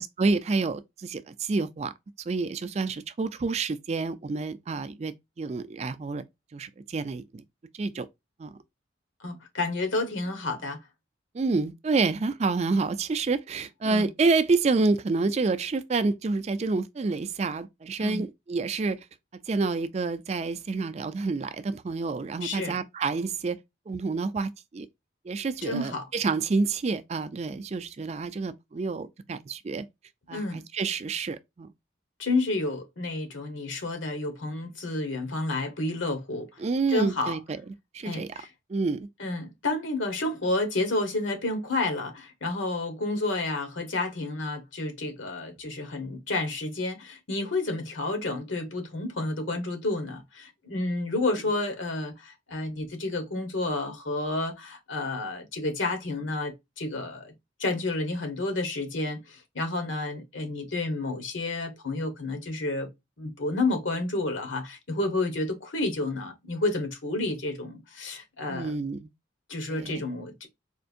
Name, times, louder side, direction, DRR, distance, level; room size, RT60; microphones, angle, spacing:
voice 1, 0.0-1.9 2.3-6.2 6.5-7.4 7.7-8.1 8.4-8.5 11.3-19.0 19.5-23.6 23.9-24.9 25.2-29.9 30.3-31.7 36.6-37.6 37.9-38.3 38.7-39.1 68.5-69.1 69.7-70.0, right 3 dB, 35° right, 0.3 m, -28 dB
voice 2, 9.2-10.8 13.8-14.1 18.0-18.2 22.4-22.8 25.6-26.1 30.3-30.6 32.2-36.6 36.9-37.4 38.0-38.5 39.2-57.3 57.6-62.9 63.2-68.7 69.5-70.5, left 2 dB, 80° left, 1.2 m, -30 dB
4.3 x 2.5 x 2.5 m
head